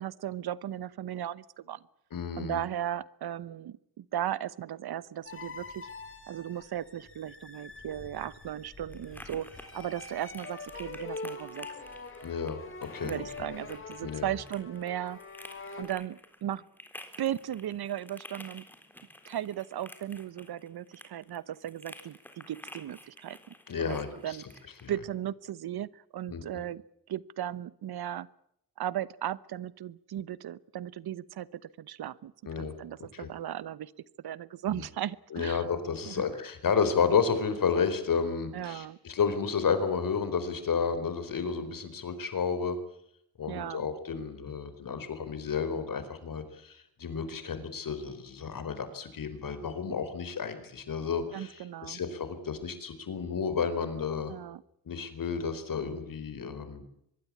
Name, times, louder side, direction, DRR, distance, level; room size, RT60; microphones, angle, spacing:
voice 1, 0.0-1.8 2.4-5.9 6.3-9.5 9.7-11.7 13.0-15.2 15.8-16.6 17.2-18.6 19.3-23.4 23.8-24.4 24.9-26.8 27.1-28.3 28.8-32.3 32.6-33.9 34.2-35.6 36.1-36.2 38.5-39.0 43.5-43.8 51.3-52.0 54.3-54.6, right 11 dB, 80° right, 19 dB, 1.0 m, -36 dB
voice 2, 2.1-2.6 12.2-12.6 12.9-13.2 14.0-14.3 23.7-24.4 24.8-24.9 26.3-26.4 32.5-32.7 33.1-33.3 35.3-42.8 43.4-54.3 54.9-56.8, left 6 dB, 60° left, 11 dB, 4.4 m, -31 dB
sound 1, 5.2-15.8, left 3 dB, 35° left, 4.7 m, -44 dB
sound 2, 7.7-24.9, left 1 dB, 5° left, 3.7 m, -51 dB
24.5 x 22.0 x 8.7 m, 0.73 s
wide cardioid pair, 125°, 37 cm